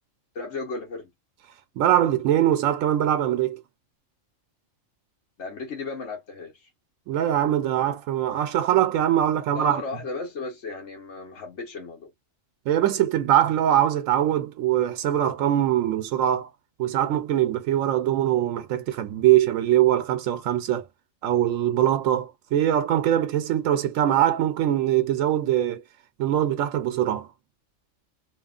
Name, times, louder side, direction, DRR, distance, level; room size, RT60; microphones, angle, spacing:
voice 1, 0.3-1.1 5.4-6.5 9.5-12.1, left 3 dB, 65° left, 1.4 m, -35 dB
voice 2, 1.8-3.6 7.1-9.8 12.7-16.5 16.8-20.8 21.2-25.8 26.2-27.3, right 11 dB, 85° right, 1.0 m, -22 dB
2.9 x 2.2 x 2.4 m
omnidirectional pair, 1.3 m